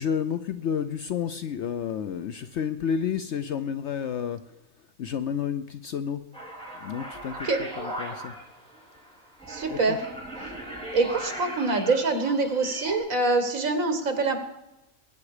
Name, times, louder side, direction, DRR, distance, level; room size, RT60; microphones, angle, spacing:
voice 1, 0.0-4.4 5.0-6.2 6.8-8.3 9.7-10.0, left 7 dB, 65° left, 11 dB, 0.9 m, -30 dB
sound 1, 6.3-13.0, right 1 dB, 5° left, 3.3 m, -38 dB
voice 2, 7.3-7.6 9.5-10.0 10.9-14.4, right 3 dB, 75° right, 7 dB, 2.1 m, -25 dB
20.5 x 9.7 x 4.9 m, 0.95 s
omnidirectional pair, 1.4 m